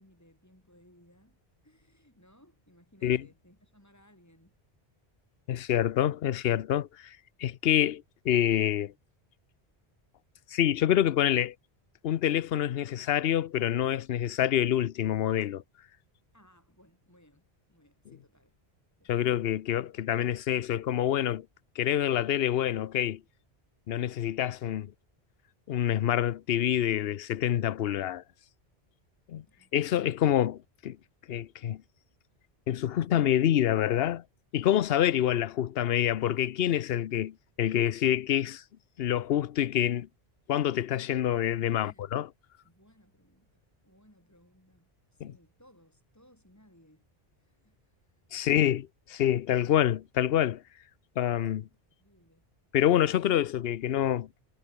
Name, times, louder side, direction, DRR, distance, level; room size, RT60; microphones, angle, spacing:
voice 1, 0.0-4.6 16.3-18.6 19.0-19.3 29.5-29.7 38.8-39.1 41.6-42.1 42.6-47.1 47.3-48.4 51.9-52.4, equal, 15° left, 5.7 m, -62 dB
voice 2, 5.5-8.9 10.5-11.5 12.0-15.6 19.1-21.4 21.8-23.2 23.9-24.9 25.7-28.2 29.3-29.4 29.7-31.0 31.3-31.8 32.7-34.2 34.5-38.6 39.0-40.1 40.5-42.3 45.2-45.3 48.3-50.6 51.2-51.7 52.7-54.3, left 11 dB, 70° left, 0.9 m, -27 dB
omnidirectional pair, 1.1 m